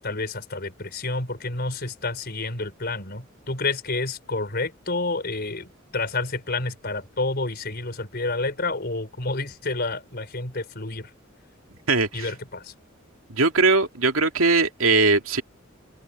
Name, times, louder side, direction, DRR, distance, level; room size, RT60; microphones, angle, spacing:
voice 1, 0.0-11.1 12.1-12.7, left 3 dB, 50° left, 4.6 m, -29 dB
voice 2, 11.9-12.3 13.3-15.4, right 3 dB, 90° right, 2.5 m, -20 dB
head